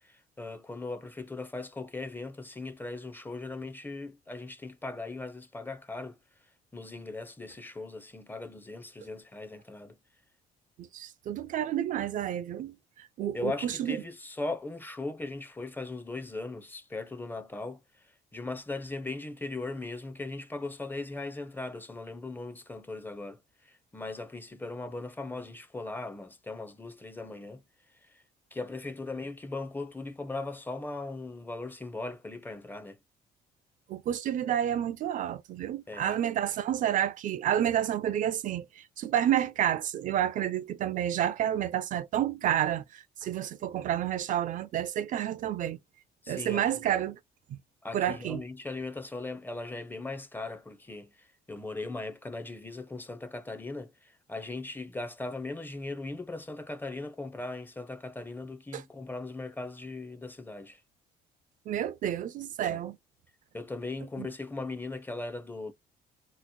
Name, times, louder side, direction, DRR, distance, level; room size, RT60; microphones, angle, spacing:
voice 1, 0.0-6.2 6.7-10.0 13.3-27.6 28.0-28.2 28.5-33.0 35.9-36.2 46.2-46.8 47.8-60.8 62.7-62.8 63.5-65.7, left 3 dB, 10° left, 0.5 m, -39 dB
voice 2, 10.8-14.0 33.9-45.8 46.3-47.2 47.5-47.6 47.9-48.4 58.7-58.8 61.7-63.0 64.2-64.3, right 11 dB, 50° right, 0.4 m, -30 dB
2.9 x 2.0 x 4.1 m
cardioid pair, 110°, 17 cm